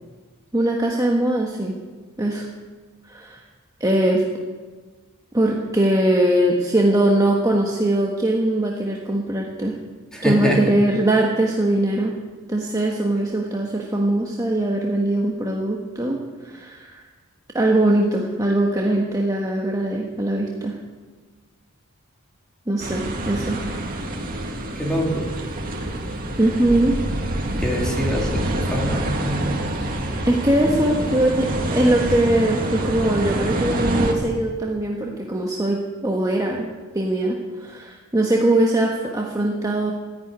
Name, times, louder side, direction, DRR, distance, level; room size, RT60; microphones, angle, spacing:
voice 1, 0.5-1.8 2.2-2.5 3.1-3.4 3.8-4.2 5.3-9.8 10.2-12.2 12.5-17.0 17.5-20.8 22.7-23.6 26.4-27.0 30.2-36.7 36.9-39.9, right 1 dB, 15° right, -1 dB, 1.4 m, -21 dB
voice 2, 10.1-10.6 24.8-25.3 27.6-29.8, equal, 5° left, -2 dB, 3.3 m, -25 dB
sound 1, 22.8-34.1, right 1 dB, 40° right, 2.1 m, -26 dB
13.5 x 11.0 x 9.6 m, 1.4 s
head